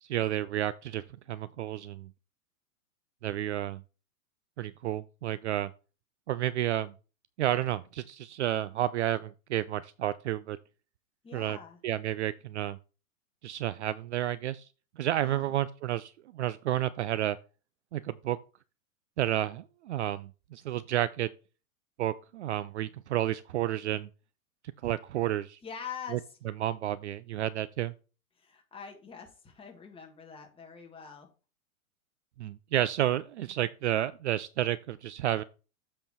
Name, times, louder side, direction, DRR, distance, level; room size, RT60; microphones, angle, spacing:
voice 1, 0.0-2.1 3.2-3.8 4.6-5.7 6.3-6.9 7.4-10.6 11.3-11.6 11.8-12.8 13.4-14.7 15.0-17.4 17.9-18.4 19.2-21.3 22.0-24.1 24.8-25.6 26.1-26.2 26.6-27.9 32.4-35.4, right 12 dB, 55° right, 0.5 m, -31 dB
voice 2, 11.2-11.8 15.2-15.6 25.6-26.4 28.4-31.3, left 7 dB, 15° left, 1.6 m, -44 dB
7.6 x 4.5 x 4.6 m
figure-of-eight pair, 110°, 42 cm